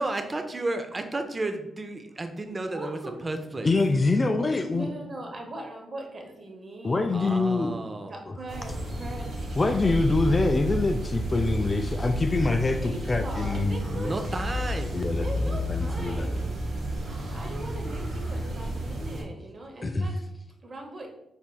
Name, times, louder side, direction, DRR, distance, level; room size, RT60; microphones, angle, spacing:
voice 1, 0.0-3.8 7.1-8.1 14.1-15.0, right 2 dB, 30° right, 0.4 m, -32 dB
voice 2, 2.5-3.2 4.7-7.2 8.1-9.9 10.9-11.0 12.7-14.1 15.2-16.6 17.3-20.2 20.6-21.1, right 1 dB, 50° right, 0.9 m, -40 dB
voice 3, 3.6-4.9 6.8-7.7 8.3-8.4 9.6-14.1 14.9-16.3 17.2-17.3 19.8-20.1, left 3 dB, 35° left, 0.3 m, -25 dB
sound 1, 8.5-19.2, equal, 75° right, 1.1 m, -31 dB
4.1 x 3.5 x 2.2 m
supercardioid pair, 60°, 0 cm